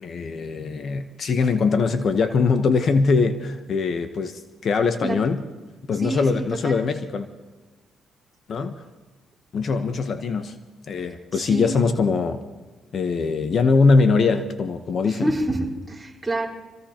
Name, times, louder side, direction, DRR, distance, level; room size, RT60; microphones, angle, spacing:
voice 1, 0.0-5.4 5.9-7.3 8.5-8.8 9.5-10.5 10.9-12.4 12.9-15.3, left 4 dB, 55° left, 8 dB, 0.9 m, -22 dB
voice 2, 5.9-6.8 11.3-11.7 15.0-16.5, right 1 dB, 10° right, -3 dB, 4.3 m, -28 dB
25.5 x 16.0 x 2.9 m, 1.3 s
cardioid pair, 90°, 0 cm